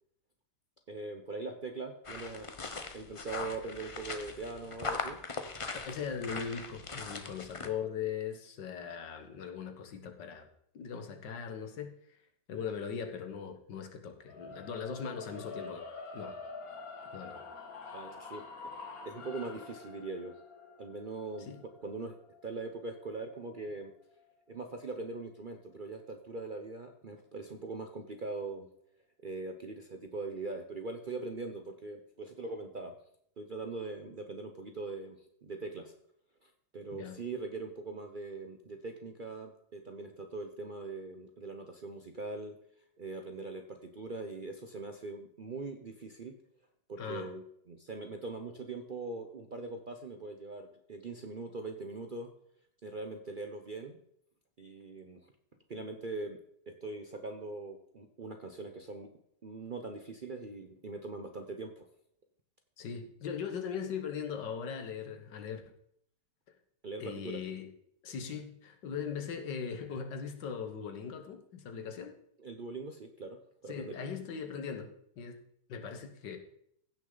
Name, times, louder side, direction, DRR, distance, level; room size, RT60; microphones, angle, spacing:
voice 1, 0.9-2.5 2.9-5.2 17.9-18.4 19.0-20.4 20.8-22.2 22.4-23.9 24.5-28.7 29.2-32.9 33.4-35.9 36.7-42.6 43.0-46.4 46.9-52.3 52.8-54.0 54.6-55.2 55.7-56.4 56.7-59.1 59.4-61.8 66.8-67.4 72.4-73.9, right 3 dB, 50° right, 5 dB, 0.6 m, -41 dB
sound 1, 2.0-7.7, left 4 dB, 40° left, 0.4 m, -40 dB
voice 2, 5.8-10.5 10.7-12.0 12.5-15.9 16.1-16.4 17.1-17.4 21.4-21.6 36.9-37.2 47.0-47.3 62.8-65.6 67.0-67.7 68.0-72.1 73.7-74.9 75.2-75.4 75.7-76.4, left 7 dB, 85° left, 6 dB, 1.9 m, -39 dB
sound 2, 14.3-24.4, left 3 dB, 60° left, 1.6 m, -47 dB
15.5 x 6.4 x 3.9 m, 0.70 s
omnidirectional pair, 1.8 m